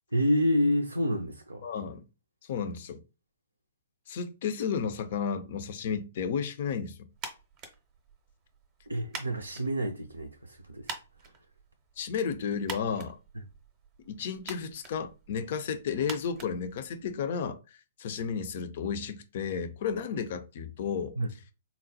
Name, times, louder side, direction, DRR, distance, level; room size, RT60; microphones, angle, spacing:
voice 1, 0.1-1.6 8.9-10.9 21.2-21.3, equal, 85° right, 0.4 m, -28 dB
voice 2, 1.6-2.0 2.5-3.0 4.1-7.1 12.0-13.2 14.0-17.6 18.0-21.1, left 6 dB, 50° left, 0.5 m, -32 dB
sound 1, 7.1-17.4, right 4 dB, 30° right, 0.6 m, -46 dB
3.9 x 2.0 x 2.7 m
figure-of-eight pair, 120°, 0 cm